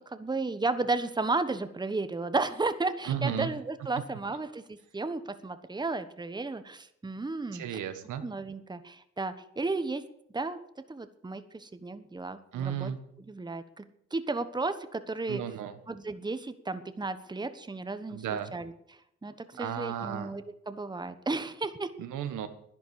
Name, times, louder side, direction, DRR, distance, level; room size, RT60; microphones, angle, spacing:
voice 1, 0.0-7.8 8.2-10.0 10.3-10.6 10.9-12.9 13.3-13.8 14.1-15.4 15.9-18.7 19.2-21.9, right 3 dB, 15° right, 10 dB, 1.2 m, -33 dB
voice 2, 3.0-3.5 7.5-8.2 12.5-13.0 15.3-15.7 18.1-18.5 19.6-20.3 22.0-22.5, right 9 dB, 80° right, 9 dB, 1.5 m, -33 dB
11.5 x 10.5 x 8.4 m, 0.74 s
cardioid pair, 90°, 30 cm